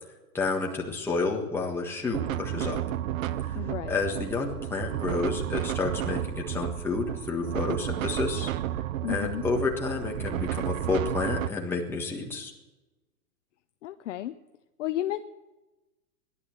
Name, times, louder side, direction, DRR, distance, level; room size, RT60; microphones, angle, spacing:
voice 1, 0.3-2.8 3.4-3.6 3.9-8.5 9.1-12.5, left 3 dB, 5° left, -1 dB, 1.5 m, -30 dB
sound 1, 2.1-11.5, right 12 dB, 60° right, 0.6 m, -32 dB
voice 2, 3.6-4.0 9.0-9.4 13.8-14.3 14.8-15.2, left 13 dB, 50° left, 9 dB, 0.7 m, -32 dB
17.0 x 11.0 x 7.7 m, 1.1 s
hypercardioid pair, 155°, 46 cm